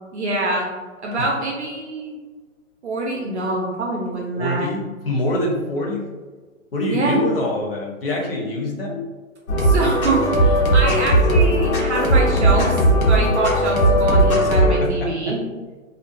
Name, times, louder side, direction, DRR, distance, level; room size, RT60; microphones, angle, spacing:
voice 1, 0.1-0.7 1.0-2.2 2.8-4.7 6.9-7.2 9.6-12.8 13.1-15.4, right 2 dB, 55° right, -2 dB, 0.5 m, -24 dB
voice 2, 4.3-6.1 6.7-9.0 14.8-15.4, left 1 dB, 45° left, -1 dB, 0.6 m, -24 dB
sound 1, 9.5-14.8, right 1 dB, 85° left, 0.8 m, -17 dB
2.4 x 2.2 x 2.5 m, 1.4 s
hypercardioid pair, 165°, 41 cm